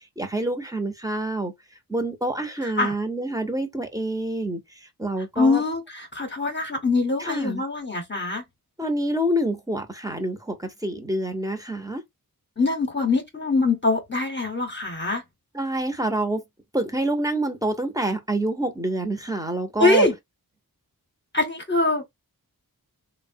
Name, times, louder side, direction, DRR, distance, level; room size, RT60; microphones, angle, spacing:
voice 1, 0.2-1.5 1.9-4.6 5.0-5.6 7.2-7.6 8.8-12.0 15.5-16.4 16.7-20.1, right 1 dB, 10° right, 0.8 m, -27 dB
voice 2, 2.6-3.0 5.4-8.4 12.6-15.2 19.8-20.1 21.3-22.0, left 3 dB, 30° left, 0.9 m, -23 dB
3.2 x 2.2 x 2.6 m
wide cardioid pair, 55°, 37 cm